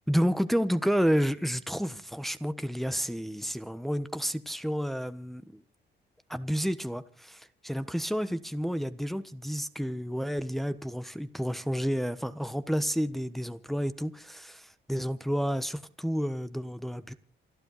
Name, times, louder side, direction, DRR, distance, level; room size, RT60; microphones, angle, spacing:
voice 1, 0.1-5.6 6.3-17.1, equal, ahead, 1.2 m, -30 dB
28.0 x 11.5 x 4.2 m
cardioid pair, 90°, 20 cm